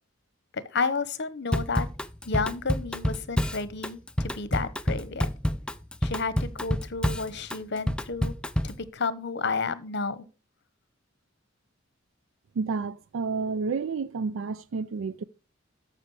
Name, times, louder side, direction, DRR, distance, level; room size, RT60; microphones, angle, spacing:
voice 1, 0.5-1.9 2.2-5.3 6.0-8.3 8.6-10.2, left 4 dB, 60° left, 1.0 m, -31 dB
Drum kit / Drum, 1.5-8.8, equal, 5° left, 0.4 m, -28 dB
voice 2, 12.6-15.2, right 4 dB, 80° right, 0.4 m, -30 dB
13.5 x 5.5 x 4.8 m
head